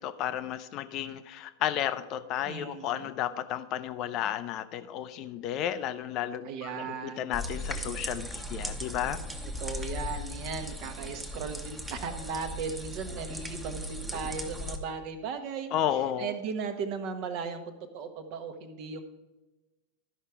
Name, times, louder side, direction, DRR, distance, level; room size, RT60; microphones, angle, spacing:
voice 1, 0.0-6.8 7.2-9.2 15.7-16.3, left 11 dB, 40° left, 12 dB, 0.5 m, -32 dB
voice 2, 2.5-3.1 6.4-7.4 9.6-19.0, right 5 dB, 45° right, 8 dB, 1.1 m, -37 dB
sound 1, 7.3-14.8, equal, 5° right, 1.0 m, -37 dB
12.5 x 5.5 x 4.7 m, 1.1 s
figure-of-eight pair, 90°, 0 cm